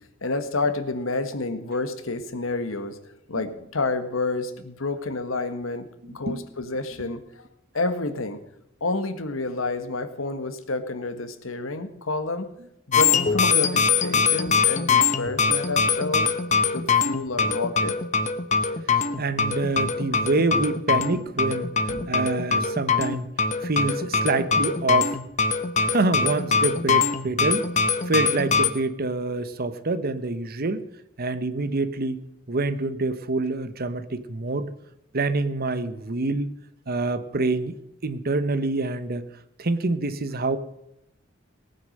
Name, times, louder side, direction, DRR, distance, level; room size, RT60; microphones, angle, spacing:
voice 1, 0.2-3.0 3.3-7.5 7.7-8.4 8.8-12.5 12.9-16.3 16.7-18.0, left 3 dB, 85° left, 9 dB, 1.5 m, -29 dB
sound 1, 12.9-28.7, left 5 dB, 35° left, 1.0 m, -23 dB
voice 2, 19.2-23.3 23.6-25.2 25.8-27.7 28.1-30.9 31.2-32.2 32.5-34.7 35.1-36.5 36.9-37.8 38.0-39.2 39.6-40.6, right 3 dB, 50° right, 13 dB, 1.0 m, -26 dB
18.5 x 9.5 x 6.5 m, 0.83 s
head